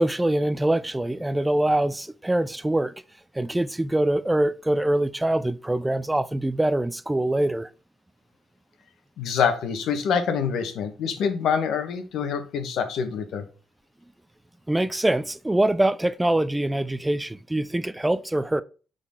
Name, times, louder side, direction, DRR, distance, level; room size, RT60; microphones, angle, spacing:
voice 1, 0.0-2.9 3.3-7.7 14.7-18.6, right 1 dB, 10° right, 0.4 m, -24 dB
voice 2, 9.2-13.4, left 6 dB, 80° left, 1.1 m, -26 dB
8.2 x 4.0 x 3.5 m
cardioid pair, 90°, 0 cm